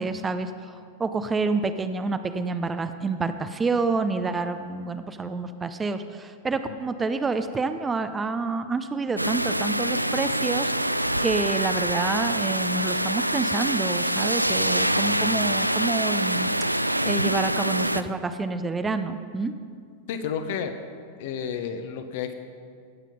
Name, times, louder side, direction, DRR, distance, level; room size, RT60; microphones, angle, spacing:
voice 1, 0.0-10.7 11.2-16.6 17.0-19.5, right 4 dB, 15° right, 10 dB, 0.5 m, -28 dB
sound 1, 9.2-18.0, right 1 dB, 90° right, 0.3 m, -25 dB
voice 2, 20.1-20.7 21.2-22.3, left 7 dB, 50° left, 8 dB, 1.0 m, -31 dB
17.0 x 7.5 x 5.3 m, 2.2 s
figure-of-eight pair, 90°, 0 cm